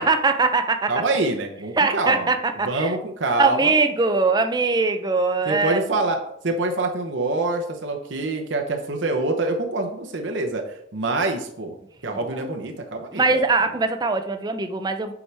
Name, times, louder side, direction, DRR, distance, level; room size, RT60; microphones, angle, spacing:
voice 1, 0.0-0.9 1.8-2.9 3.4-5.8 12.3-12.5 13.1-15.1, right 3 dB, 20° right, 8 dB, 0.5 m, -21 dB
voice 2, 0.9-2.3 2.6-3.7 5.5-11.7 12.0-13.4, right 2 dB, 70° right, 3 dB, 0.8 m, -26 dB
7.1 x 4.8 x 3.4 m, 0.74 s
head